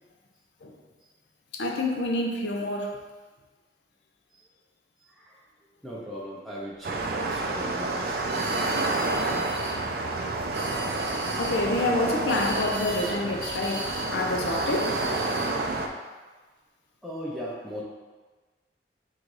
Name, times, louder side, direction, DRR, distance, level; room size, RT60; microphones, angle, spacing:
voice 1, 1.5-3.0 11.4-15.0, left 2 dB, 80° left, 0.6 m, -27 dB
voice 2, 5.1-5.4 5.8-7.0 7.3-8.2 8.7-9.6 17.0-17.8, equal, ahead, 0.6 m, -39 dB
sound 1, 6.8-15.9, right 2 dB, 55° right, 0.4 m, -29 dB
sound 2, 8.3-9.8 10.4-11.6 12.3-13.2 13.4-14.1 14.5-15.6, right 2 dB, 80° right, 0.8 m, -37 dB
3.8 x 2.6 x 4.7 m
head